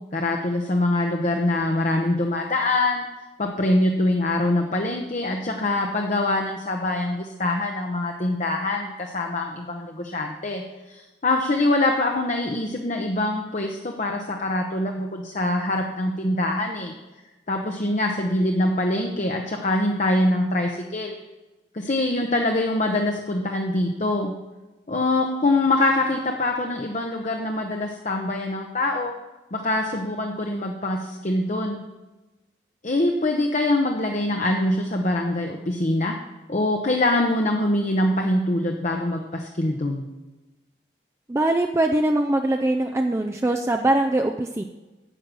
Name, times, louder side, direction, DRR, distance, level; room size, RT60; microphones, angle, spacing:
voice 1, 0.1-3.0 3.4-17.0 17.5-21.1 21.7-24.3 24.9-29.1 29.5-31.8 32.8-36.2 36.5-40.0, left 2 dB, 40° left, 2 dB, 0.8 m, -24 dB
voice 2, 41.3-44.6, right 1 dB, 15° right, 4 dB, 0.4 m, -22 dB
10.0 x 7.9 x 6.1 m, 1.1 s
head